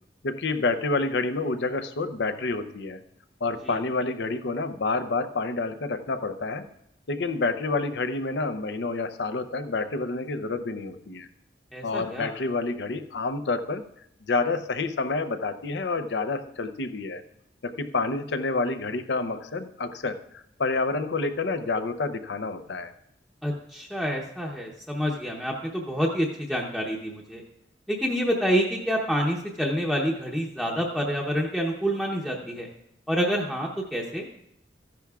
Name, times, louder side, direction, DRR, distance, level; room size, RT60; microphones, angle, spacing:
voice 1, 0.2-3.0 3.4-6.7 7.1-11.3 11.8-13.8 14.3-17.2 17.6-20.2 20.6-22.9, left 3 dB, 80° left, 10 dB, 0.7 m, -28 dB
voice 2, 11.7-12.3 23.4-27.4 27.9-32.7 33.1-34.3, equal, ahead, -2 dB, 0.7 m, -27 dB
14.0 x 10.5 x 2.4 m, 0.75 s
head